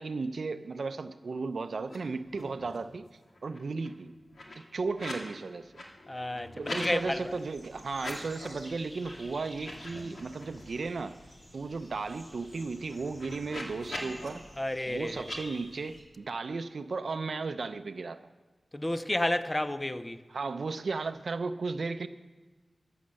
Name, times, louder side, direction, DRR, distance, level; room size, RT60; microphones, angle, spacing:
voice 1, 0.0-3.1 3.4-4.1 4.7-5.7 6.6-11.2 11.5-14.5 14.9-18.3 20.3-22.1, right 4 dB, 75° right, 0.5 m, -35 dB
sound 1, 1.8-2.0 2.2-2.9 3.2-5.3 5.6-6.9 7.9-8.6 9.0-9.2 9.5-10.8 11.2-11.3 11.6-14.3 15.2-15.4, left 1 dB, 70° left, 2.1 m, -43 dB
voice 2, 6.1-7.4 14.6-15.2 18.7-20.2, left 1 dB, 20° left, 0.6 m, -31 dB
sound 2, 6.9-16.0, equal, 40° left, 3.2 m, -52 dB
14.0 x 7.8 x 6.4 m
wide cardioid pair, 80°, 0 cm